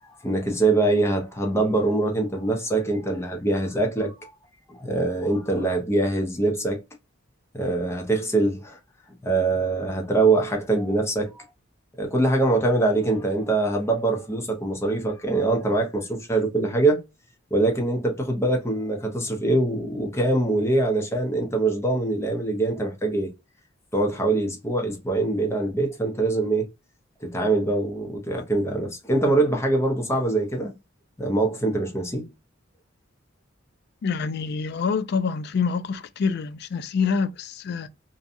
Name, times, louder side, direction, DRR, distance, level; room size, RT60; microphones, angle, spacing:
voice 1, 0.2-4.3 4.7-6.8 7.5-8.8 9.2-11.4 12.0-17.0 17.5-23.3 23.9-26.7 27.2-30.7 31.2-32.3, right 2 dB, 15° left, 0.7 m, -23 dB
voice 2, 34.0-37.9, left 5 dB, 55° left, 0.3 m, -26 dB
2.7 x 2.3 x 2.5 m
head